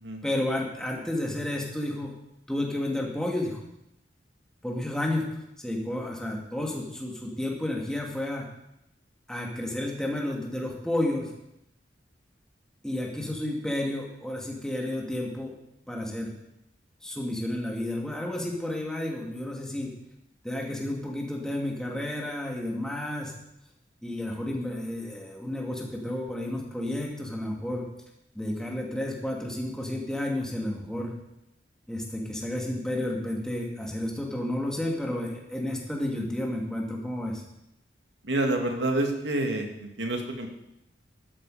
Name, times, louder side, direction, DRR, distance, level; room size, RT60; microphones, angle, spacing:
voice 1, 0.2-2.1 2.5-3.6 4.6-8.5 9.3-11.3 12.8-15.5 15.9-16.3 17.0-19.9 20.4-23.4 24.0-27.8 28.3-31.1 31.9-37.4, left 1 dB, 5° left, -1 dB, 2.5 m, -31 dB
voice 2, 38.2-40.5, right 1 dB, 90° right, 3 dB, 2.4 m, -28 dB
13.0 x 12.0 x 5.1 m, 0.84 s
head